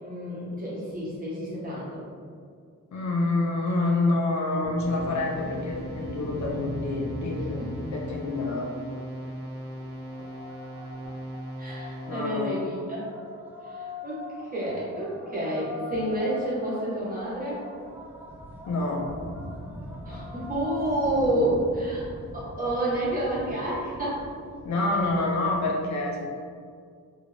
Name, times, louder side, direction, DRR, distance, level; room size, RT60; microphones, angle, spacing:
voice 1, 0.0-2.0 7.6-7.7 11.6-13.1 13.6-14.2 14.5-17.6 20.0-22.1 22.3-24.2, right 1 dB, 25° right, -8 dB, 1.1 m, -29 dB
voice 2, 2.9-7.6 7.9-8.7 12.1-12.5 18.7-19.1 24.6-26.4, left 2 dB, 60° left, 0 dB, 0.4 m, -27 dB
sound 1, 4.6-8.9, left 1 dB, 85° left, 0.7 m, -38 dB
sound 2, 4.8-12.4, right 1 dB, 75° right, 0.8 m, -39 dB
sound 3, 8.1-25.6, left 2 dB, 5° right, 0.4 m, -43 dB
2.5 x 2.4 x 3.2 m, 2.1 s
wide cardioid pair, 110°, 33 cm